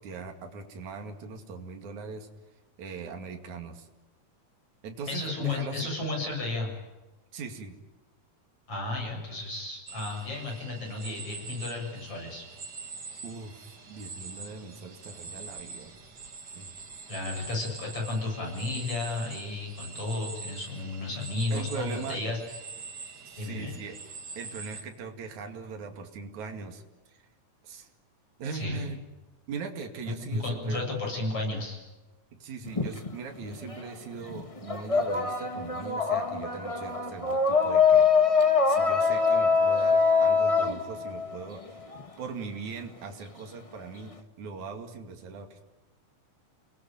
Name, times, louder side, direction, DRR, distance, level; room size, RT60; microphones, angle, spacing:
voice 1, 0.0-2.3 2.8-3.9 4.8-5.9 7.3-7.8 13.2-16.0 16.6-16.7 21.5-22.3 23.3-24.0 24.4-26.8 27.1-27.2 27.6-27.9 28.4-29.0 29.5-31.0 32.3-38.1 38.6-41.8 42.2-45.7, right 4 dB, 65° right, 4 dB, 3.8 m, -40 dB
voice 2, 5.1-6.7 8.7-12.4 17.1-22.4 23.4-23.7 28.6-28.8 30.4-31.8, left 2 dB, 45° left, 0 dB, 8.7 m, -33 dB
sound 1, 9.9-24.8, right 4 dB, 35° right, 2.4 m, -44 dB
sound 2, 32.7-33.9 34.2-42.0, left 5 dB, 25° left, 0.7 m, -24 dB
29.5 x 19.5 x 9.3 m, 1.1 s
omnidirectional pair, 3.6 m